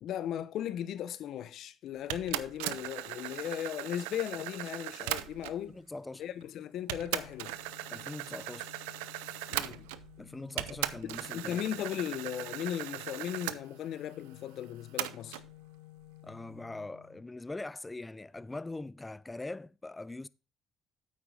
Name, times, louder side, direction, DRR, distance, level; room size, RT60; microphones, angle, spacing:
voice 1, 0.0-5.8 6.2-7.6 9.5-9.9 11.3-15.4, left 10 dB, 70° left, 0.8 m, -37 dB
sound 1, 2.1-5.7 6.4-6.5 6.9-10.2 10.6-13.6 15.0-15.5, right 16 dB, 85° right, 0.5 m, -38 dB
voice 2, 5.7-6.2 7.9-8.7 10.2-11.6 16.2-20.3, left 2 dB, 20° left, 0.5 m, -42 dB
Organ, 6.9-17.8, left 19 dB, 85° left, 0.4 m, -54 dB
8.7 x 8.6 x 3.8 m
hypercardioid pair, 55°, 0 cm